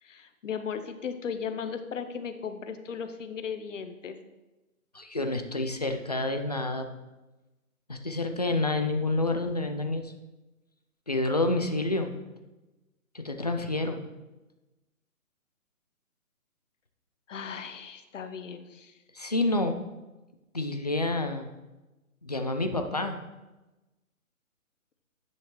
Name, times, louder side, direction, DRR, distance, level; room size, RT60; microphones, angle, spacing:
voice 1, 0.0-4.2 17.3-19.0, left 6 dB, 60° left, 9 dB, 0.9 m, -36 dB
voice 2, 4.9-6.9 7.9-10.1 11.1-12.1 13.1-14.0 19.1-19.8 20.5-21.5 22.2-23.2, left 2 dB, 30° left, 5 dB, 0.4 m, -28 dB
10.0 x 5.7 x 3.1 m, 1.1 s
hypercardioid pair, 150°, 43 cm